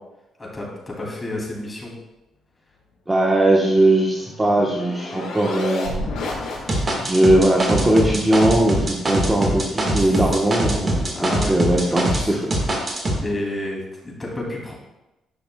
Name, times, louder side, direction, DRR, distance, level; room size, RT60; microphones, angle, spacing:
voice 1, 0.4-1.9 10.0-10.3 11.1-11.6 11.9-12.7 13.2-14.7, left 1 dB, 20° left, -3 dB, 2.6 m, -31 dB
voice 2, 3.1-5.9 7.0-12.4, right 1 dB, 15° right, -2 dB, 1.1 m, -19 dB
sound 1, 3.7-7.2, left 2 dB, 90° left, 2.1 m, -31 dB
sound 2, 6.7-12.2 12.5-13.2, right 1 dB, 30° right, 1.6 m, -23 dB
10.5 x 5.8 x 2.3 m, 0.98 s
cardioid pair, 90°, 0 cm